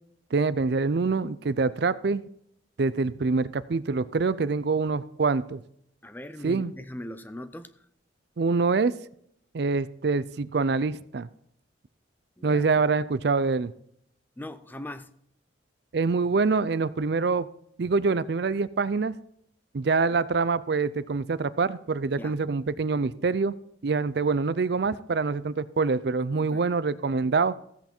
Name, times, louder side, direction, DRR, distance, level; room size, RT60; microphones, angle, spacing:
voice 1, 0.3-2.2 2.8-5.6 6.4-6.7 8.4-8.9 9.5-11.3 12.4-13.7 15.9-17.5 17.8-19.1 19.7-23.5 23.8-27.5, right 4 dB, 55° right, 0.4 m, -25 dB
voice 2, 6.0-7.8 12.4-12.7 14.4-15.1 22.2-22.4 26.3-26.6, left 1 dB, 10° left, 0.5 m, -40 dB
15.0 x 8.2 x 4.4 m
head